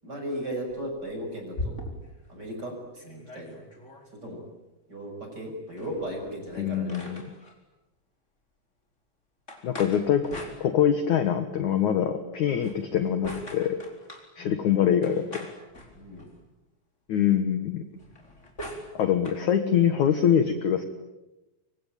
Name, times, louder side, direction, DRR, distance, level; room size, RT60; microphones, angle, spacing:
voice 1, 0.0-1.8 2.3-3.6 4.1-4.4 4.9-7.1 14.4-14.6 16.0-16.3, equal, 20° right, 3 dB, 7.1 m, -36 dB
sound 1, 0.7-2.3 2.7-2.8 3.0-4.1 5.7-7.6 9.5-11.2 12.5-14.3 15.0-16.4 17.9-19.4, left 1 dB, 15° left, 4.3 m, -41 dB
voice 2, 6.6-7.2 9.6-10.4 10.6-13.8 14.4-15.4 17.1-17.8 18.9-20.8, left 9 dB, 60° left, 9 dB, 2.1 m, -24 dB
26.0 x 24.5 x 9.1 m, 1.0 s
omnidirectional pair, 5.3 m